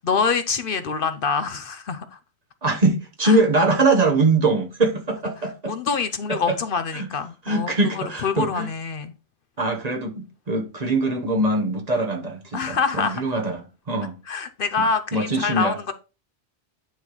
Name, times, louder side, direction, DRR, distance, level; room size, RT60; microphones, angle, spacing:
voice 1, 0.0-2.2 3.2-3.4 5.4-9.1 12.5-13.2 14.3-15.9, left 5 dB, 60° left, 0.8 m, -26 dB
voice 2, 2.6-5.7 6.9-7.1 7.5-8.7 9.6-13.6 13.9-14.1 15.1-15.7, right 2 dB, 40° right, 1.1 m, -22 dB
9.3 x 3.2 x 5.3 m
omnidirectional pair, 1.1 m